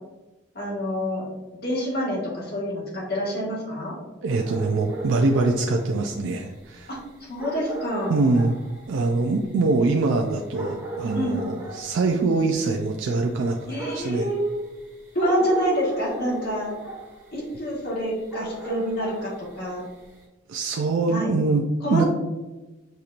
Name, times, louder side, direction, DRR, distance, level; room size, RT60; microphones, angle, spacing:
voice 1, 0.5-1.3 1.6-3.9 6.9-7.0 7.3-8.2 11.1-11.4 13.7-14.6 15.1-16.7 17.3-19.8 21.1-21.4 21.8-22.1, equal, 55° left, -5 dB, 1.4 m, -27 dB
voice 2, 4.2-6.9 8.1-8.5 8.9-14.3 20.5-21.6 21.9-22.0, right 3 dB, 80° right, 2 dB, 0.4 m, -23 dB
sound 1, 4.3-20.2, right 2 dB, 15° right, 1.2 m, -38 dB
6.6 x 2.9 x 2.4 m, 1.1 s
head